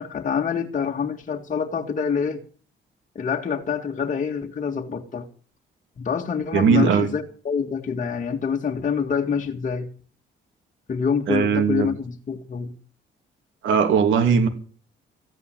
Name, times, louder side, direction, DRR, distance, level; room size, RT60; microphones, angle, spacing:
voice 1, 0.0-2.4 3.2-5.3 6.0-9.9 10.9-12.7, left 6 dB, 40° left, 2.0 m, -26 dB
voice 2, 6.5-7.1 11.3-11.9 13.6-14.5, right 6 dB, 80° right, 3.0 m, -19 dB
15.0 x 9.7 x 8.0 m
cardioid pair, 90°, 20 cm